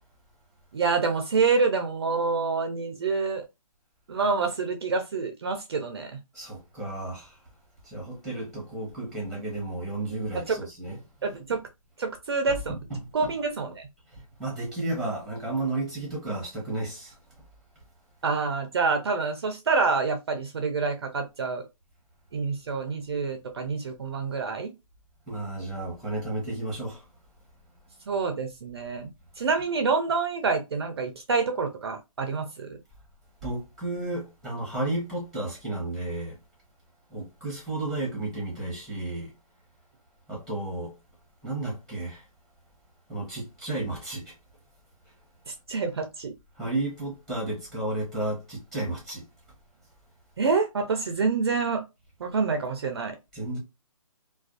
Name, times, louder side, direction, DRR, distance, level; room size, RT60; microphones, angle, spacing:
voice 1, 0.7-3.4 4.1-6.1 10.5-10.6 11.2-11.6 12.0-12.7 13.1-13.9 18.2-21.6 22.3-24.7 28.1-29.1 29.4-32.7 45.5-46.3 50.4-51.8 52.2-53.2, right 4 dB, 45° right, 0.4 m, -27 dB
voice 2, 6.3-7.4 7.8-11.0 11.3-11.4 12.7-13.3 14.1-17.2 25.3-27.0 33.4-36.4 37.1-39.3 40.3-41.0 41.4-42.3 43.1-44.3 46.6-49.3 53.3-53.6, right 2 dB, 5° left, 0.8 m, -33 dB
2.4 x 2.2 x 2.3 m
hypercardioid pair, 160°, 19 cm